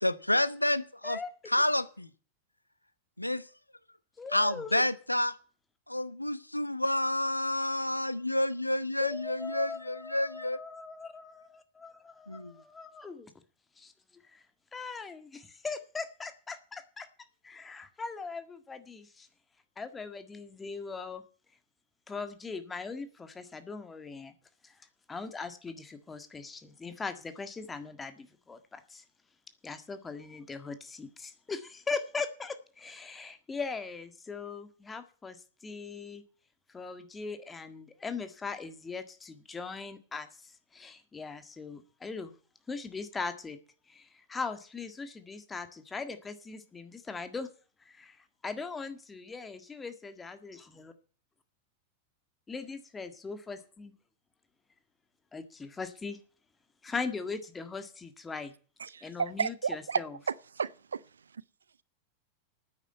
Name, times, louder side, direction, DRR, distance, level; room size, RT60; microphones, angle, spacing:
voice 1, 0.0-1.2 1.5-2.1 3.2-3.5 4.3-5.4 5.9-10.6 12.3-12.5, left 1 dB, 85° left, 0.9 m, -29 dB
voice 2, 4.2-4.8 9.0-13.3 13.8-14.4 14.7-17.1 17.4-19.3 19.8-21.2 22.1-24.3 24.6-24.7 25.1-29.0 29.6-35.4 35.6-36.2 36.7-42.3 42.7-43.6 43.9-47.5 47.8-48.2 48.4-50.6 52.5-53.9 55.3-56.2 56.8-58.5 59.0-60.1, left 4 dB, 15° left, 1.7 m, -40 dB
voice 3, 58.8-61.0, right 6 dB, 70° right, 0.5 m, -33 dB
9.7 x 9.2 x 8.8 m
figure-of-eight pair, 90°, 0 cm